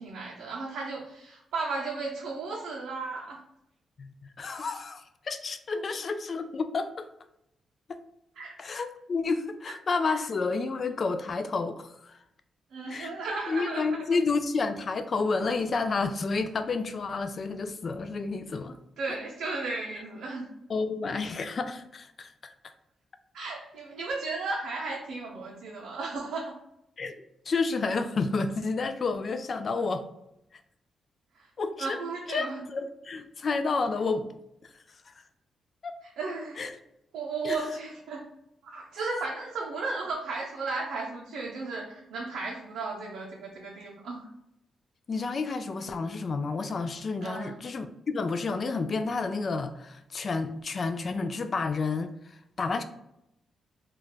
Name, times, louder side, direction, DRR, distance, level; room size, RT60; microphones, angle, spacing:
voice 1, 0.0-3.4 5.7-5.8 8.4-8.5 10.0-10.2 12.7-14.0 19.0-20.5 23.3-26.6 31.3-31.5 31.8-32.6 36.2-36.6 37.1-38.2 38.6-44.3 47.2-47.6, right 3 dB, 80° right, -3 dB, 0.5 m, -35 dB
voice 2, 4.0-7.1 7.9-8.0 8.6-12.2 12.9-13.1 13.5-18.8 20.7-22.3 27.0-30.1 31.6-32.0 32.3-32.5 32.7-34.3 35.1-35.2 35.8-35.9 36.6-36.7 37.4-37.6 45.1-52.1 52.6-52.8, left 4 dB, 50° left, 9 dB, 0.3 m, -30 dB
2.3 x 2.1 x 3.8 m, 0.81 s
supercardioid pair, 60°, 0 cm